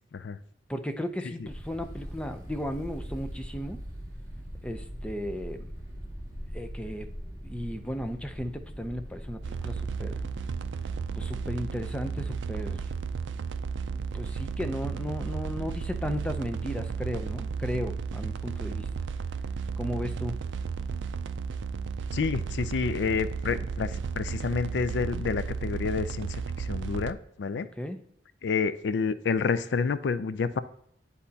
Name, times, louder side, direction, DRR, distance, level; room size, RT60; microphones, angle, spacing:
voice 1, 0.7-3.8 4.6-5.7 6.5-7.1 7.4-10.2 11.2-12.8 13.9-18.9 19.8-20.4 27.6-28.0, equal, 5° left, 7 dB, 0.5 m, -35 dB
sound 1, 1.4-12.3, equal, 20° right, 2.0 m, -41 dB
sound 2, 9.4-27.1, right 5 dB, 80° right, 0.4 m, -33 dB
voice 2, 22.1-27.7 28.4-30.6, left 5 dB, 70° left, 13 dB, 0.4 m, -29 dB
9.9 x 4.1 x 2.8 m, 0.71 s
head